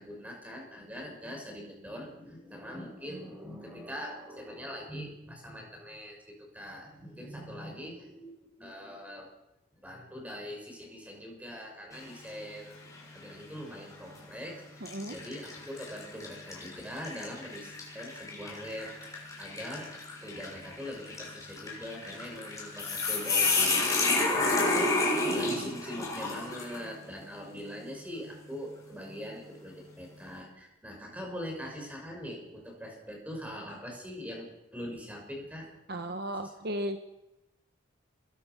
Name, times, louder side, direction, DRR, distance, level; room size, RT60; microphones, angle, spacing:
voice 1, 0.0-6.2 6.5-9.3 9.8-12.8 13.1-20.0 20.2-35.7 36.4-36.5, equal, 5° right, 1 dB, 5.9 m, -42 dB
sound 1, 11.9-12.4 12.9-13.1 14.0-14.2 14.9-26.9, left 3 dB, 15° left, 6.3 m, -31 dB
voice 2, 14.8-15.1 35.9-37.0, right 1 dB, 50° right, 7 dB, 1.2 m, -35 dB
27.5 x 21.5 x 6.1 m, 0.94 s
head